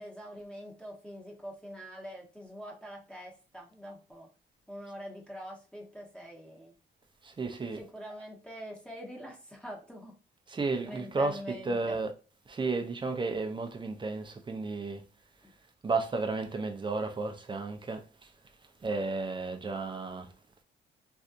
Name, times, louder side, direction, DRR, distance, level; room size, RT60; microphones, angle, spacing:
voice 1, 0.0-4.3 4.7-6.7 7.8-10.2 10.8-12.0 15.4-15.5, equal, 5° left, 1.0 m, -44 dB
voice 2, 7.2-7.8 10.5-11.4 11.6-12.1 12.5-15.0 15.8-18.3 18.8-20.3, right 3 dB, 25° right, 0.6 m, -33 dB
3.2 x 2.6 x 2.4 m
cardioid pair, 90°, 20 cm